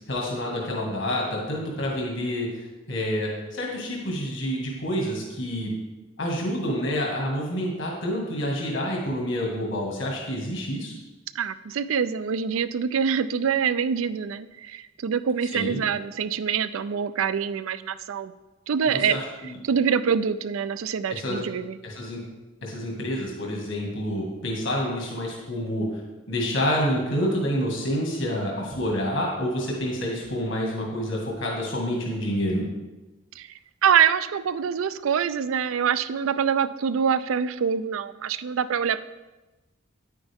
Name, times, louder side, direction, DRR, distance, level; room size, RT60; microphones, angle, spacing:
voice 1, 0.1-5.7 6.2-11.0 15.5-15.8 18.8-19.6 21.1-21.4 21.8-22.2 22.6-26.0 26.3-32.6, equal, 70° left, -2 dB, 1.9 m, -28 dB
voice 2, 11.3-18.3 18.7-19.2 19.6-21.8 33.4-33.5 33.8-39.0, right 7 dB, 80° right, 15 dB, 0.4 m, -25 dB
9.9 x 9.1 x 3.5 m, 1.1 s
head